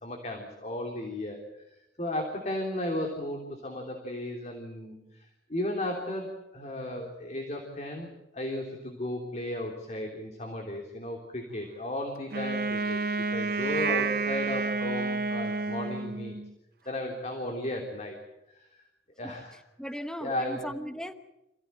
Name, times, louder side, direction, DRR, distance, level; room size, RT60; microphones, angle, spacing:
voice 1, 0.0-1.4 1.7-8.1 8.3-13.0 13.3-16.4 16.8-18.2 18.5-18.8 19.2-19.6 20.2-20.7, left 1 dB, 40° left, 2 dB, 3.2 m, -35 dB
Wind instrument woodwind instrument, 12.3-16.5, right 4 dB, 60° right, 1.0 m, -30 dB
voice 2, 19.8-21.1, equal, 5° left, 8 dB, 1.1 m, -37 dB
27.0 x 16.0 x 9.1 m, 0.91 s
head